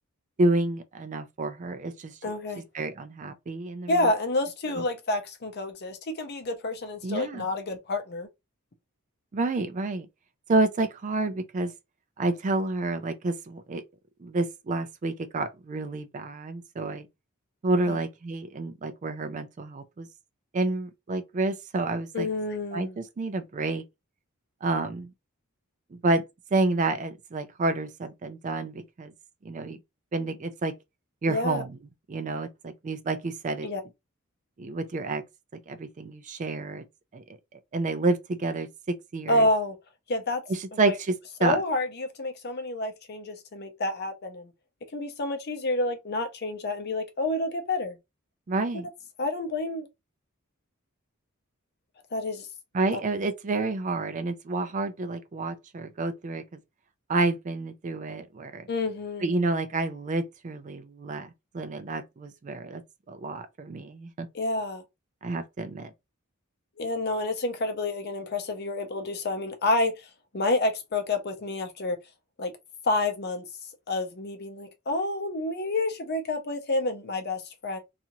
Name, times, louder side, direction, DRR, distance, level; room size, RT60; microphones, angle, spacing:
voice 1, 0.4-2.1 2.7-4.0 4.8-4.9 7.0-7.5 9.3-10.1 10.5-11.7 12.2-13.8 14.2-17.1 17.6-20.1 20.5-22.3 22.7-23.8 24.6-25.1 25.9-26.2 26.5-29.1 29.4-29.8 30.1-30.7 31.2-31.8 32.1-33.7 34.6-35.2 35.7-36.8 37.1-37.2 37.7-39.5 40.8-41.6 48.5-48.9 52.7-56.4 57.1-58.7 59.2-62.8 63.1-64.3 65.2-65.9, right 2 dB, 35° right, 0.3 m, -29 dB
voice 2, 2.2-2.6 3.9-8.3 17.9-18.0 22.1-23.0 31.3-31.6 33.6-33.8 39.3-39.8 40.1-40.4 40.7-40.9 41.4-44.5 44.9-48.0 49.2-49.9 52.1-52.5 52.9-53.0 58.7-59.3 64.3-64.8 66.8-72.0 72.4-72.5 72.8-73.5 73.9-77.8, left 2 dB, 50° left, 0.6 m, -29 dB
2.7 x 2.4 x 2.9 m
head